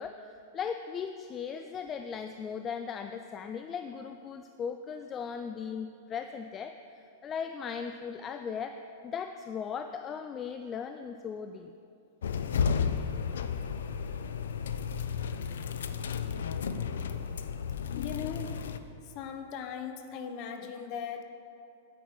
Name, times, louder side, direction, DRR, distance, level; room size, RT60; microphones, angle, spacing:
voice 1, 0.0-11.7 14.1-14.2 15.3-15.5 20.6-20.7, left 6 dB, 25° left, 8 dB, 0.3 m, -38 dB
sound 1, 12.2-18.8, left 6 dB, 85° left, 0.5 m, -33 dB
voice 2, 18.0-18.6 19.1-21.2, left 7 dB, 40° left, 7 dB, 0.9 m, -38 dB
10.0 x 8.9 x 4.7 m, 2.5 s
hypercardioid pair, 140°, 0 cm